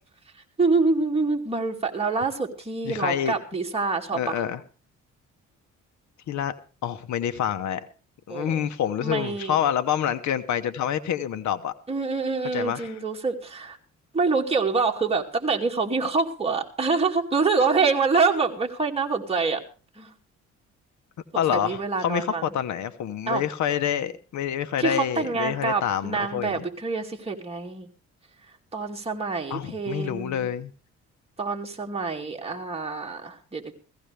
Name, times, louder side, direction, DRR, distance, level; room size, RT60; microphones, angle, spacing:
voice 1, 0.6-4.4 8.3-8.7 9.0-9.6 11.9-13.8 14.1-19.6 20.0-20.1 21.5-22.5 23.3-23.4 24.8-27.9 28.7-30.5 31.4-33.8, right 4 dB, 20° right, 2.4 m, -26 dB
voice 2, 2.8-3.3 4.1-4.6 6.3-6.5 6.8-7.8 8.3-11.7 12.5-12.9 21.4-26.6 29.5-30.7, left 9 dB, 70° left, 1.0 m, -27 dB
17.0 x 15.0 x 3.4 m
cardioid pair, 90°, 30 cm